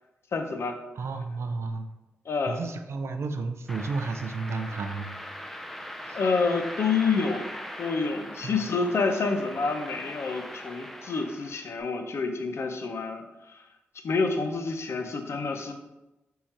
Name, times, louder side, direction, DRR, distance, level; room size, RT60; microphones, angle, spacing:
voice 1, 0.3-0.8 2.3-2.6 6.1-7.5 7.8-13.6 14.0-15.7, left 4 dB, 65° left, 6 dB, 0.5 m, -28 dB
voice 2, 1.0-1.8 2.5-5.1 6.1-6.2 8.4-8.6, right 4 dB, 65° right, 7 dB, 0.4 m, -32 dB
sound 1, 3.7-11.8, equal, 5° left, 0.5 m, -40 dB
3.6 x 2.8 x 4.3 m, 0.99 s
supercardioid pair, 45°, 5 cm